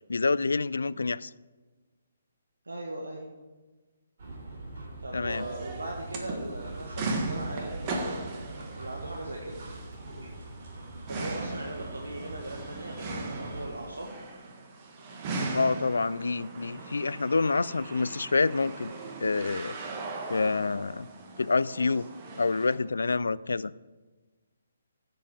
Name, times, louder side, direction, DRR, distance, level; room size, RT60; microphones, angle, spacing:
voice 1, 0.1-1.3 5.1-5.5 15.5-18.9 19.2-19.8 20.3-21.1 21.4-22.1 22.4-23.7, left 4 dB, 65° left, 20 dB, 0.4 m, -27 dB
voice 2, 2.6-3.3 5.0-9.9 10.2-10.3 11.1-14.1 21.8-22.0, right 1 dB, 70° right, -1 dB, 1.7 m, -39 dB
sound 1, 4.2-13.7, right 2 dB, 45° right, 3.7 m, -42 dB
sound 2, 5.3-22.7, right 2 dB, 25° right, 1.6 m, -39 dB
15.0 x 7.5 x 5.0 m, 1.3 s
figure-of-eight pair, 135°, 0 cm